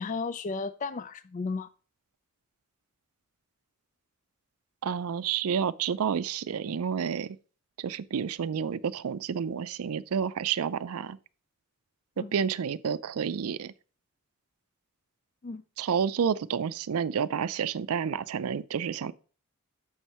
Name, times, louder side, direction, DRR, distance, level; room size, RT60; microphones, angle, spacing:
voice 1, 0.0-1.7 12.2-12.3 15.4-15.6, left 4 dB, 35° left, 0.3 m, -34 dB
voice 2, 4.8-7.4 7.8-11.2 12.2-13.7 15.8-19.1, right 7 dB, 80° right, 0.4 m, -30 dB
7.2 x 6.2 x 4.2 m
head